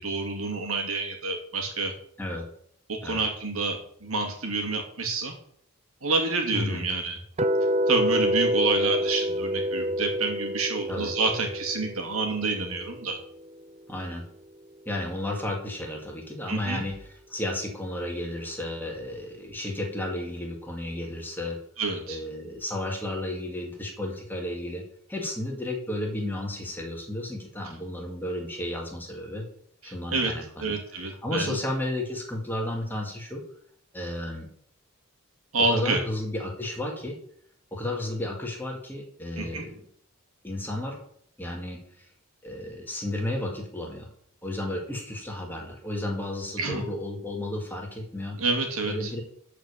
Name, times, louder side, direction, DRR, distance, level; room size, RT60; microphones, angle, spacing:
voice 1, 0.0-1.9 2.9-5.3 6.0-7.2 7.9-13.2 16.5-16.8 21.8-22.2 29.8-30.3 30.6-31.6 35.5-36.0 39.4-39.6 46.6-46.8 48.4-49.1, right 3 dB, 80° right, 2 dB, 2.4 m, -28 dB
voice 2, 2.2-2.5 3.0-3.2 6.5-6.8 10.9-11.1 13.9-14.2 14.9-21.6 22.1-24.8 25.1-29.5 29.8-30.8 31.2-33.4 33.9-34.5 35.7-37.2 37.7-39.8 40.4-41.0 41.4-42.1 42.4-44.1 44.4-48.4 48.9-49.2, left 1 dB, 10° left, 0 dB, 2.1 m, -33 dB
sound 1, 7.4-13.5, equal, 30° right, 0.4 m, -28 dB
12.5 x 5.1 x 7.0 m, 0.65 s
head